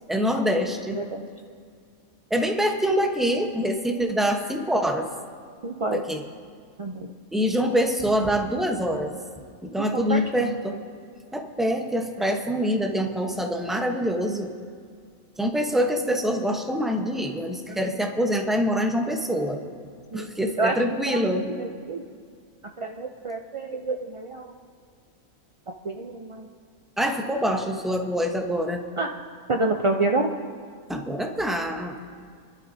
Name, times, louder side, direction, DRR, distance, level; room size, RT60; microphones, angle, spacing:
voice 1, 0.1-1.0 2.3-5.1 5.9-6.2 7.3-9.1 9.6-10.8 11.3-14.5 15.4-19.6 20.1-21.5 27.0-28.8 30.9-32.0, equal, ahead, 3 dB, 0.8 m, -25 dB
voice 2, 0.9-1.2 5.6-6.0 6.8-7.1 9.9-10.2 20.1-20.3 20.6-20.8 21.1-22.0 22.8-24.5 25.8-26.5 29.0-29.1 29.5-30.3, right 2 dB, 55° right, 2 dB, 0.3 m, -28 dB
28.0 x 12.0 x 2.7 m, 2.1 s
omnidirectional pair, 1.4 m